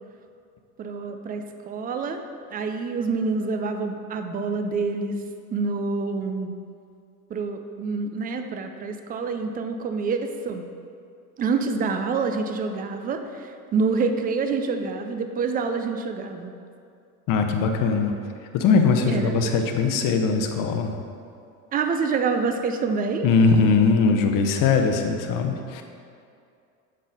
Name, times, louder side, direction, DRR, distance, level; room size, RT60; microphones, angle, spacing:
voice 1, 0.8-2.2 2.5-5.2 5.5-6.6 7.3-10.6 11.4-16.5 19.1-19.5 21.7-23.3, right 4 dB, 20° right, 6 dB, 0.4 m, -27 dB
voice 2, 17.3-18.1 18.5-20.9 23.2-25.8, left 4 dB, 50° left, 5 dB, 0.8 m, -20 dB
7.3 x 3.9 x 3.9 m, 2.4 s
hypercardioid pair, 90°, 43 cm